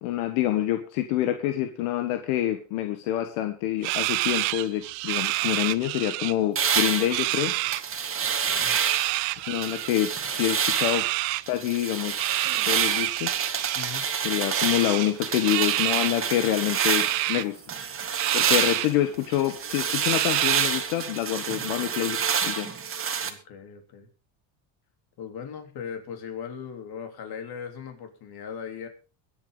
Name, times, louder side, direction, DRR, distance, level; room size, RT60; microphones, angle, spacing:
voice 1, 0.0-7.6 9.5-11.1 11.5-12.2 12.7-13.3 14.2-17.6 18.3-22.7, left 13 dB, 80° left, 7 dB, 1.6 m, -27 dB
sound 1, 3.8-6.3 6.6-7.8 8.6-9.9 10.7-11.4 12.2-14.1 14.5-16.2 16.7-17.4 18.2-18.9 19.3-19.4 20.0-20.9, right 21 dB, 90° right, 0.8 m, -28 dB
sound 2, 6.6-9.2 9.6-11.1 11.5-17.3 17.7-23.3, right 7 dB, 25° right, 1.9 m, -28 dB
voice 2, 8.2-8.8 13.7-14.1 18.3-18.5 23.2-24.1 25.2-28.9, left 7 dB, 50° left, 5 dB, 3.7 m, -39 dB
22.5 x 8.9 x 3.9 m, 0.34 s
cardioid pair, 130°, 48 cm